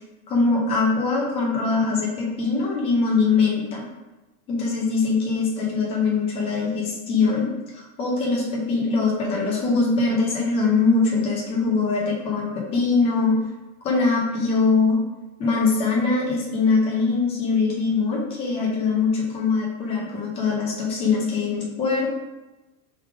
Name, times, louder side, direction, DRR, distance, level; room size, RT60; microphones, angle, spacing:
voice 1, 0.3-3.9 4.5-13.4 13.8-15.0 15.4-22.2, left 4 dB, 15° left, -3 dB, 0.4 m, -22 dB
4.6 x 3.3 x 3.4 m, 1.1 s
supercardioid pair, 170°, 44 cm